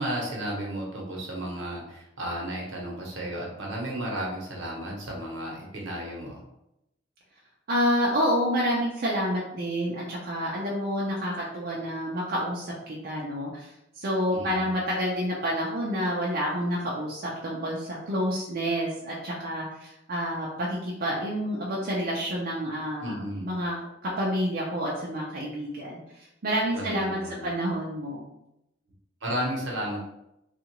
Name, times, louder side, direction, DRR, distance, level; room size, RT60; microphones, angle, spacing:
voice 1, 0.0-6.4 14.3-14.6 23.0-23.5 26.7-27.5 29.2-30.0, right 1 dB, 75° right, -2 dB, 0.9 m, -33 dB
voice 2, 7.7-13.7 14.0-23.1 23.4-26.0 26.4-28.3, equal, 50° right, -4 dB, 0.5 m, -28 dB
2.8 x 2.4 x 2.9 m, 0.84 s
head